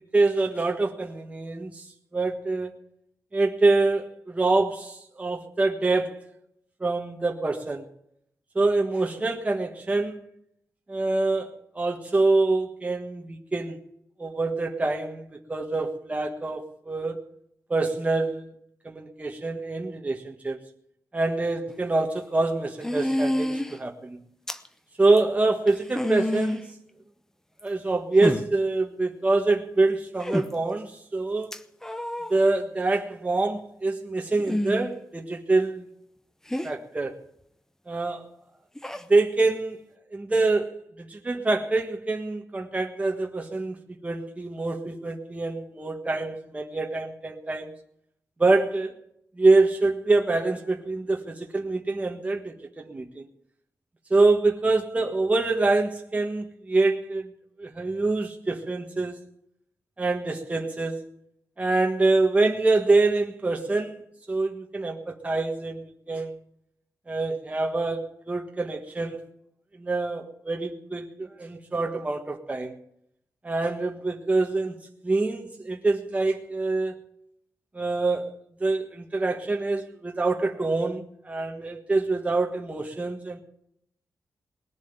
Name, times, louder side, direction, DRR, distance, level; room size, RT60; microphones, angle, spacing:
voice 1, 0.0-1.9 2.1-2.8 3.3-6.2 6.8-7.8 8.5-10.2 10.9-13.8 14.2-17.2 17.7-18.5 18.8-20.6 21.1-24.2 25.0-26.7 27.6-31.5 32.3-35.8 36.6-37.1 37.9-38.3 39.1-39.8 40.1-43.8 44.0-47.7 48.4-49.0 49.4-53.3 54.1-57.3 57.6-59.2 60.0-61.0 61.6-66.3 67.1-69.2 69.7-72.7 73.4-74.7 75.0-77.0 77.7-83.4, right 3 dB, 20° right, 1.5 m, -25 dB
sound 1, 21.7-21.8 22.8-23.8 24.5-24.7 25.2-25.3 25.7-26.7 27.6-27.7 28.2-28.4 30.2-30.5 31.5-32.3 34.4-34.9 36.5-36.7 38.8-39.0, left 1 dB, 5° left, 0.9 m, -28 dB
20.5 x 7.4 x 9.0 m
wide cardioid pair, 140°, 7 cm